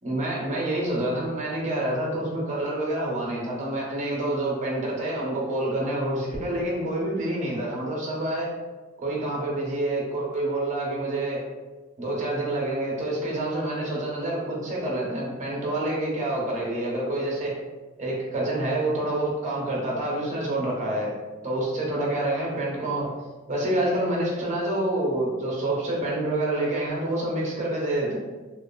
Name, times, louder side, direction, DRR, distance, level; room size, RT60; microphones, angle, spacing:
voice 1, 0.0-8.5 9.0-11.4 12.0-17.5 18.0-21.1 21.4-23.1 23.5-28.2, right 1 dB, 40° right, -3 dB, 0.7 m, -27 dB
3.0 x 2.4 x 2.2 m, 1.3 s
head